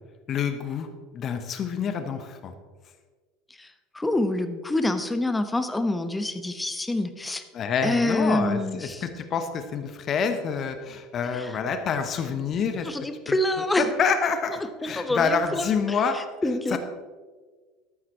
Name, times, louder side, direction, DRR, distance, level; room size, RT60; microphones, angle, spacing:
voice 1, 0.3-0.9 1.1-2.5 7.5-12.9 13.3-13.4 13.8-16.2 16.7-16.8, left 6 dB, 40° left, 8 dB, 1.0 m, -27 dB
voice 2, 3.9-7.4 7.8-9.0 11.3-11.5 12.8-13.9 14.8-16.0 16.4-16.8, left 1 dB, 10° left, 10 dB, 1.0 m, -26 dB
13.5 x 12.0 x 3.2 m, 1.4 s
figure-of-eight pair, 70°, 0 cm